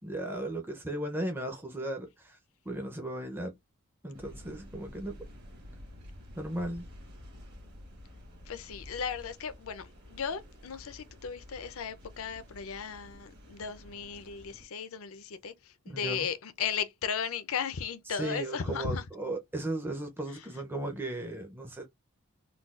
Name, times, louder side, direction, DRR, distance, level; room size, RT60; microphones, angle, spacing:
voice 1, 0.0-2.4 2.7-3.5 4.0-5.1 6.4-6.9 15.9-16.3 18.2-21.9, right 1 dB, 10° right, 0.5 m, -36 dB
sound 1, 4.1-14.7, left 1 dB, 45° right, 1.3 m, -50 dB
voice 2, 8.5-19.1 20.3-20.5, left 6 dB, 70° left, 0.5 m, -36 dB
3.8 x 2.3 x 2.4 m
head